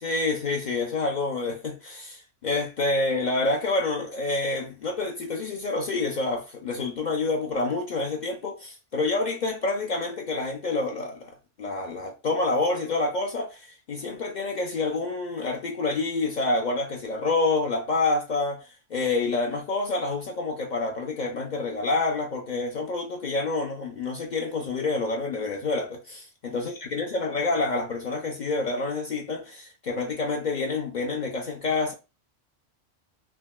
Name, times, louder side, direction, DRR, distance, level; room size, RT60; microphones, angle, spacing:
voice 1, 0.0-11.3 11.6-31.9, left 3 dB, 60° left, 0.5 m, -28 dB
3.5 x 2.2 x 2.3 m
omnidirectional pair, 1.3 m